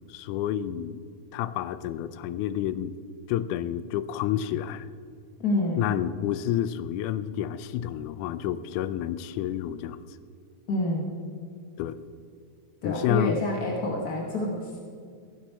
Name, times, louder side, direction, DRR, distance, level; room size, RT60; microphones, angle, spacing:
voice 1, 0.1-1.0 1.3-2.9 3.3-4.9 5.8-10.0 11.8-12.0 12.8-13.4, left 11 dB, 85° left, 14 dB, 2.0 m, -29 dB
voice 2, 5.4-5.9 10.7-11.1 12.8-14.7, left 1 dB, 70° left, 0 dB, 0.8 m, -28 dB
15.5 x 9.3 x 4.4 m, 2.2 s
omnidirectional pair, 3.5 m